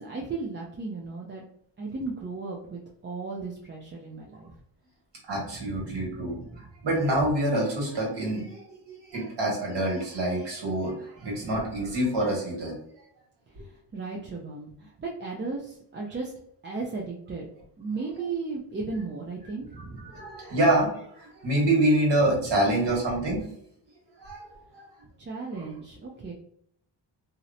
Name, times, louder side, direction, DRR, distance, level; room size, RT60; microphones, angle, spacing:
voice 1, 0.0-1.4 1.8-4.5 5.4-6.6 11.2-11.5 13.6-16.3 16.6-17.4 17.8-20.2 25.2-26.3, right 4 dB, 25° right, -2 dB, 0.4 m, -36 dB
voice 2, 5.3-8.6 9.0-12.8 19.8-23.5 24.2-24.8, right 1 dB, 65° right, -2 dB, 1.4 m, -26 dB
2.7 x 2.0 x 2.5 m, 0.68 s
cardioid pair, 75°, 46 cm